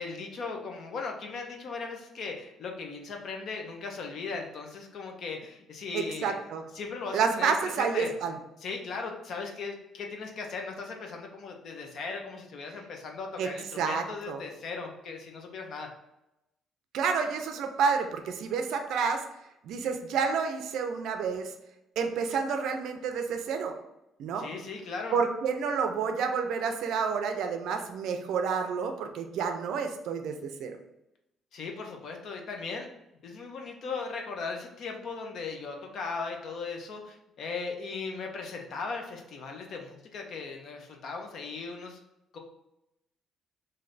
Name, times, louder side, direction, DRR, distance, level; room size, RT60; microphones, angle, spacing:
voice 1, 0.0-6.5 6.7-8.1 8.6-15.9 24.4-25.2 31.5-32.9 33.2-42.0 42.3-42.4, left 4 dB, 50° left, 2 dB, 0.6 m, -38 dB
voice 2, 5.9-6.6 7.1-8.4 13.4-13.5 13.8-14.4 16.9-19.3 19.6-21.5 22.0-23.8 24.2-24.5 25.1-30.8, right 6 dB, 65° right, 6 dB, 0.4 m, -29 dB
3.2 x 2.6 x 3.9 m, 0.89 s
cardioid pair, 170°, 0 cm